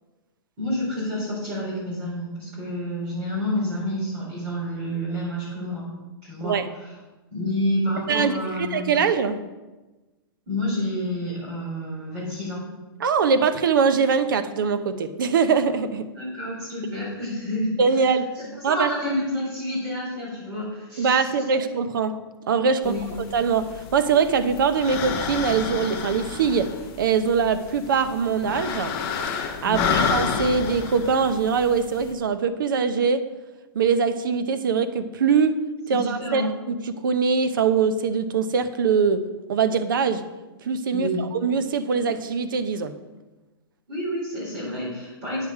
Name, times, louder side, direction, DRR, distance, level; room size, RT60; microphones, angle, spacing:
voice 1, 0.6-5.9 6.2-6.9 7.3-9.0 10.5-12.6 16.1-21.3 22.8-23.1 29.6-30.0 35.9-36.5 40.9-41.2 43.9-45.5, left 1 dB, 25° right, -6 dB, 3.5 m, -29 dB
voice 2, 8.6-9.4 13.0-16.1 17.8-18.3 18.6-18.9 21.0-22.2 22.5-23.0 23.3-26.7 27.0-29.0 29.6-33.2 33.7-35.6 35.9-39.2 39.5-40.2 40.6-42.9, right 5 dB, 55° right, 10 dB, 0.8 m, -22 dB
sound 1, 22.8-32.1, left 6 dB, 20° left, 0.7 m, -30 dB
9.2 x 7.1 x 4.8 m, 1.1 s
hypercardioid pair, 180°, 13 cm